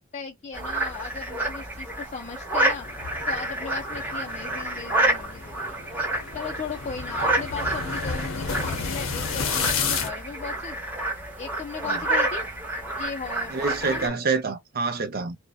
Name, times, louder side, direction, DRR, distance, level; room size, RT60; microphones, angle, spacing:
voice 1, 0.0-2.9 3.3-5.8 6.3-10.8 11.4-12.5 13.0-14.1, left 5 dB, 35° left, 0.4 m, -37 dB
sound 1, 0.5-14.1, right 1 dB, 10° right, 0.8 m, -29 dB
sound 2, 2.5-10.1, left 5 dB, 75° left, 0.6 m, -32 dB
voice 2, 13.5-15.4, right 4 dB, 45° right, 0.6 m, -27 dB
2.6 x 2.1 x 2.2 m
head